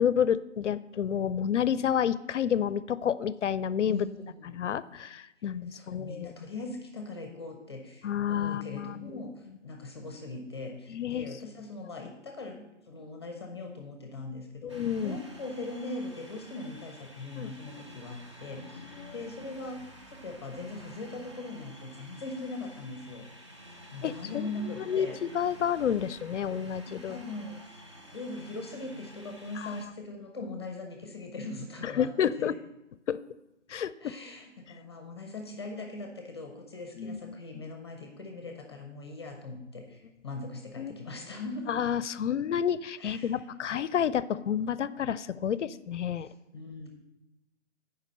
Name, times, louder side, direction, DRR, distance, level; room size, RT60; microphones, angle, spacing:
voice 1, 0.0-4.1 4.5-6.3 8.0-9.1 10.9-11.3 14.6-15.2 17.4-17.5 19.0-19.1 24.0-24.5 24.9-25.1 25.3-27.2 29.6-29.7 31.8-32.6 33.1-33.2 33.7-34.1 37.0-37.6 40.8-40.9 41.7-46.3, left 8 dB, 70° left, 17 dB, 0.5 m, -30 dB
voice 2, 3.9-4.6 5.7-9.3 9.6-23.5 23.9-25.2 26.7-27.8 28.1-32.1 32.4-32.5 34.0-41.7 43.0-43.4 46.2-46.9, left 2 dB, 20° left, 3 dB, 0.7 m, -41 dB
sound 1, 14.7-29.9, equal, 25° right, 0.6 m, -50 dB
7.3 x 4.9 x 6.6 m, 0.96 s
figure-of-eight pair, 160°, 37 cm